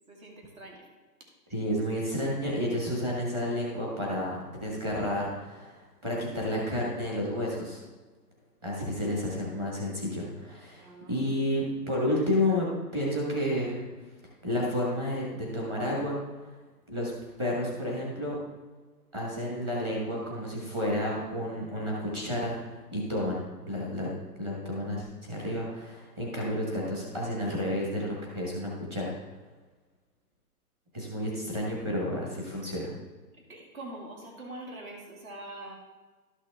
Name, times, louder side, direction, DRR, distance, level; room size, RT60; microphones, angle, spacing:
voice 1, 0.1-0.8 10.8-11.4 33.3-35.8, right 1 dB, 55° right, 0 dB, 2.4 m, -44 dB
voice 2, 1.5-7.8 8.6-13.9 14.4-16.2 16.9-17.1 17.4-18.4 19.1-22.5 22.9-24.1 24.4-29.1 30.9-32.9, left 1 dB, 15° right, -3 dB, 1.3 m, -31 dB
12.0 x 5.9 x 3.5 m, 1.3 s
hypercardioid pair, 175°, 48 cm